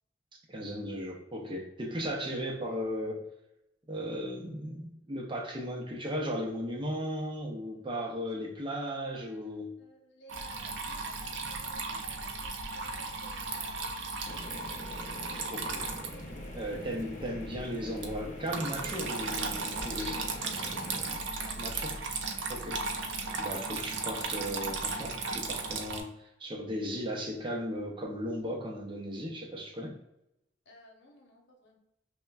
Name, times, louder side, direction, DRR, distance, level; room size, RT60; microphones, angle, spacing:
voice 1, 0.5-3.3 3.9-9.8 15.5-15.8 16.6-20.3 21.6-22.1 22.5-22.9 23.4-30.0, equal, 25° right, 0.6 m, -36 dB
voice 2, 9.8-12.1 12.4-15.0 16.5-17.1 17.9-18.0 19.9-20.5 21.0-22.1 22.7-22.9 30.7-31.8, left 1 dB, 70° left, 0.9 m, -56 dB
Water tap faucet / Trickle dribble, 10.3-26.0, right 3 dB, 85° right, 0.5 m, -36 dB
sound 1, 14.2-21.2, left 1 dB, 40° left, 0.6 m, -45 dB
5.5 x 2.2 x 2.3 m
head